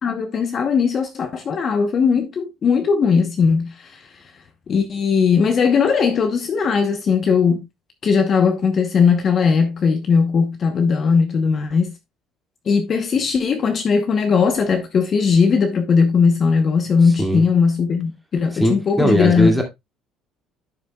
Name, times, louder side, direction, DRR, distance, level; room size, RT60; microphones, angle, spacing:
voice 1, 0.0-4.3 4.7-7.7 8.0-11.9 12.7-19.5, left 5 dB, 35° left, 0.9 m, -18 dB
voice 2, 18.5-19.6, equal, ahead, 2.3 m, -19 dB
11.5 x 6.7 x 2.3 m
cardioid pair, 135°, 0 cm